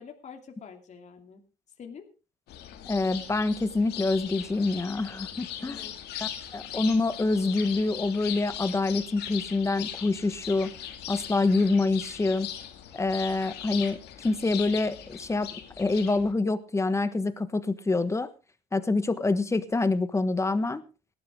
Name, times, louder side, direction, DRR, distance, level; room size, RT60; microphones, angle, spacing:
voice 1, 0.0-1.4 1.8-2.1 5.6-6.0, left 6 dB, 45° left, 4 dB, 2.7 m, -46 dB
sound 1, 2.5-16.3, left 10 dB, 80° left, 2.4 m, -39 dB
voice 2, 2.9-5.9 6.2-10.7 11.1-12.5 12.9-15.5 15.8-18.3 18.7-20.8, left 3 dB, 15° left, 12 dB, 1.3 m, -26 dB
18.0 x 12.0 x 3.7 m, 0.32 s
cardioid pair, 110°, 17 cm